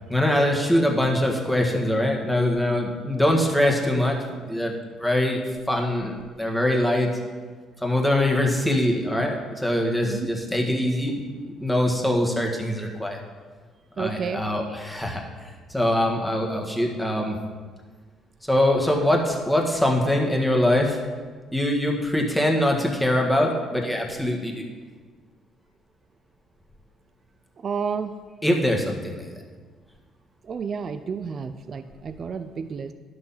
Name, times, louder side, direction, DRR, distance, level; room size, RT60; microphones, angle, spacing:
voice 1, 0.1-4.2 4.5-5.4 5.7-7.1 7.8-11.2 11.6-13.2 14.0-15.2 15.7-17.4 18.4-21.0 21.5-24.7 28.4-29.3, left 1 dB, 5° left, 0 dB, 1.7 m, -23 dB
voice 2, 14.0-14.4 27.6-28.1 30.4-32.9, right 6 dB, 40° right, 9 dB, 0.4 m, -31 dB
11.0 x 6.4 x 5.7 m, 1.5 s
cardioid pair, 110°, 0 cm